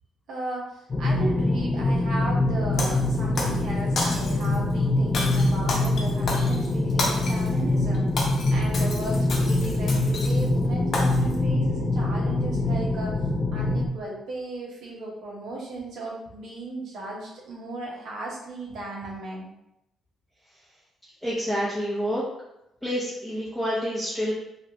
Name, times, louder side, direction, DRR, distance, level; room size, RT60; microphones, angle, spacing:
voice 1, 0.3-13.1 13.5-19.5, right 2 dB, 75° right, -3 dB, 1.0 m, -36 dB
sound 1, 0.9-13.9, left 2 dB, 35° left, 0.4 m, -24 dB
Shatter, 2.8-3.6 4.0-4.6 5.1-7.5 7.9-10.5 10.9-11.3, left 2 dB, 55° left, 0.7 m, -31 dB
voice 2, 21.2-22.2 22.8-24.3, equal, ahead, -9 dB, 0.8 m, -28 dB
3.2 x 2.5 x 2.9 m, 0.84 s
cardioid pair, 90°, 0 cm